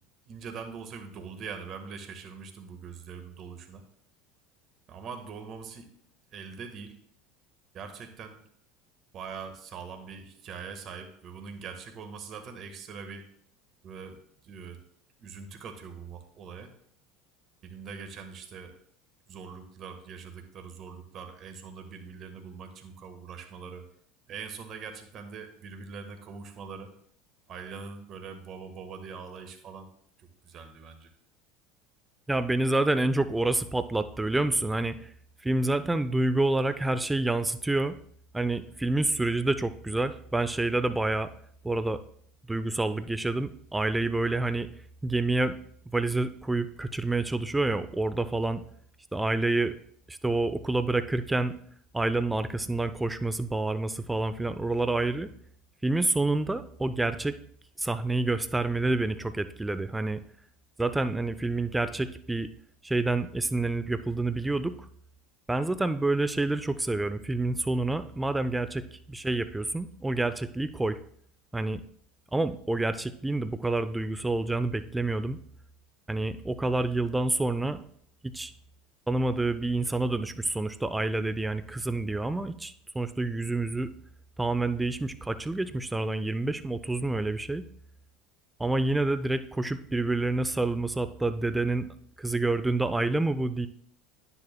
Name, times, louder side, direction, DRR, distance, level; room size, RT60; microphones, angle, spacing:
voice 1, 0.2-3.8 4.9-5.9 6.3-7.0 7.7-8.4 9.1-13.3 13.8-14.8 15.2-16.7 17.6-18.8 19.3-23.8 24.3-26.9 27.5-29.9 30.2-31.1, right 5 dB, 45° right, 6 dB, 1.5 m, -42 dB
voice 2, 32.3-35.1 35.4-38.0 38.3-41.3 41.6-42.0 42.5-44.7 45.0-45.6 45.9-48.6 49.1-49.7 50.1-51.5 51.9-55.3 55.8-57.4 57.8-60.2 60.8-62.5 62.8-64.9 65.5-71.0 71.5-71.8 72.3-75.4 76.1-77.8 78.2-78.5 79.1-83.9 84.4-87.7 88.6-91.9 92.2-93.7, right 2 dB, 10° right, 12 dB, 0.6 m, -28 dB
10.0 x 9.8 x 2.3 m, 0.63 s
hypercardioid pair, 85°, 0 cm